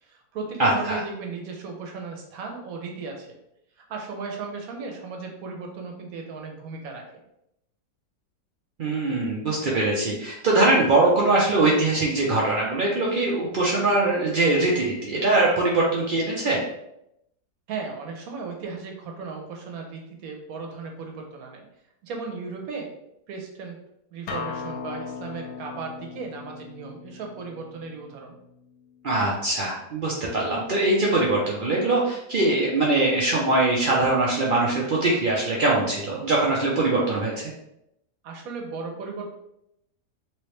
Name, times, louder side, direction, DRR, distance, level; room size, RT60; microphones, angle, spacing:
voice 1, 0.0-3.4 3.9-7.0 17.7-21.6 22.0-22.9 23.3-23.8 24.1-28.4 38.2-39.3, right 4 dB, 65° right, 2 dB, 1.1 m, -36 dB
voice 2, 0.6-1.0 8.8-16.6 29.0-37.5, right 2 dB, 90° right, -4 dB, 0.4 m, -22 dB
Acoustic guitar, 24.3-29.5, left 5 dB, 70° left, 1.1 m, -39 dB
3.2 x 3.1 x 3.1 m, 0.81 s
omnidirectional pair, 1.7 m